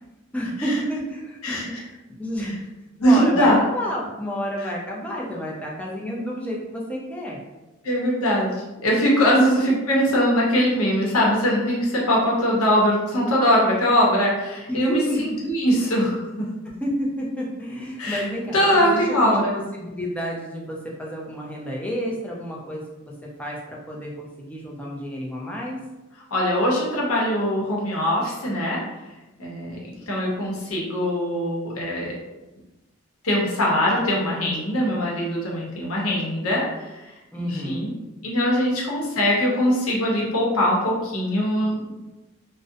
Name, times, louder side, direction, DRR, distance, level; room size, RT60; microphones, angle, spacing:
voice 1, 0.3-1.7 2.1-2.7 3.0-7.4 14.7-15.5 16.8-25.8 37.3-37.9, equal, 5° left, -3 dB, 0.3 m, -30 dB
voice 2, 1.4-1.8 2.4-2.5 3.0-3.6 4.6-4.7 7.8-16.4 18.0-18.2 18.5-19.6 26.3-28.8 29.4-32.2 33.2-37.9 38.2-41.9, equal, 80° left, -3 dB, 0.7 m, -22 dB
2.5 x 2.1 x 2.5 m, 1.0 s
head